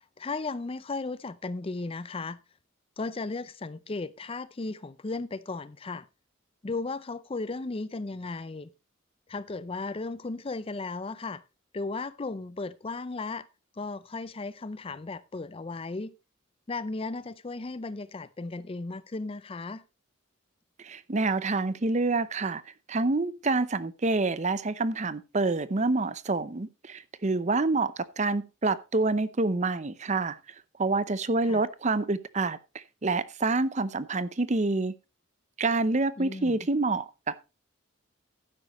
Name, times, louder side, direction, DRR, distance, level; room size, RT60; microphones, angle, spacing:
voice 1, 0.0-2.4 3.0-6.1 6.6-8.7 9.3-11.4 11.7-13.5 13.8-16.1 16.7-19.8 31.4-31.6 36.2-36.7, left 3 dB, 30° left, 0.5 m, -35 dB
voice 2, 20.8-22.6 22.9-30.4 30.8-34.9 35.6-37.4, right 3 dB, 35° right, 0.7 m, -27 dB
12.0 x 9.9 x 3.1 m
head